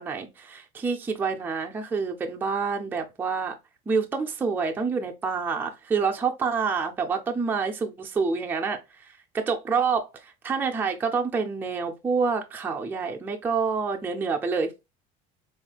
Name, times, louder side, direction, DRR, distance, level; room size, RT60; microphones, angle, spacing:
voice 1, 0.0-3.5 3.9-14.7, right 5 dB, 10° right, 0.5 m, -27 dB
4.1 x 3.1 x 2.2 m
cardioid pair, 160°, 17 cm